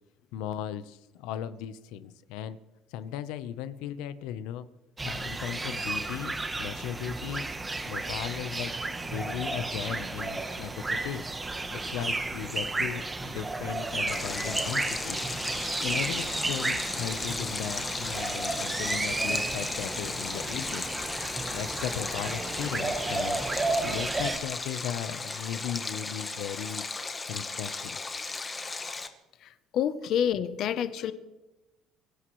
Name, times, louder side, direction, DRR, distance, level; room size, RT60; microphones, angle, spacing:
voice 1, 0.3-2.6 2.9-4.7 5.0-7.5 7.8-8.7 9.1-11.3 11.7-15.2 15.8-20.9 21.5-23.4 23.8-26.8 27.3-28.0, left 10 dB, 90° left, 13 dB, 0.9 m, -37 dB
sound 1, 5.0-24.4, right 2 dB, 10° right, 1.1 m, -33 dB
Stream, 14.1-29.1, left 3 dB, 15° left, 1.1 m, -36 dB
voice 2, 29.4-31.1, left 9 dB, 45° left, 12 dB, 0.8 m, -28 dB
24.5 x 16.5 x 3.2 m, 1.0 s
cardioid pair, 175°, 0 cm